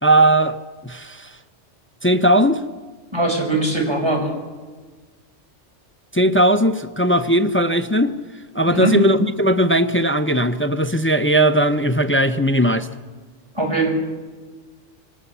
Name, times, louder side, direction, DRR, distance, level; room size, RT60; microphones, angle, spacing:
voice 1, 0.0-0.6 0.8-1.3 2.0-2.6 6.1-8.1 8.5-12.9, right 1 dB, 15° left, 10 dB, 0.5 m, -18 dB
voice 2, 3.1-4.3 8.6-8.9 13.5-13.9, right 1 dB, 20° right, 2 dB, 5.0 m, -21 dB
23.0 x 18.5 x 6.9 m, 1.4 s
omnidirectional pair, 1.3 m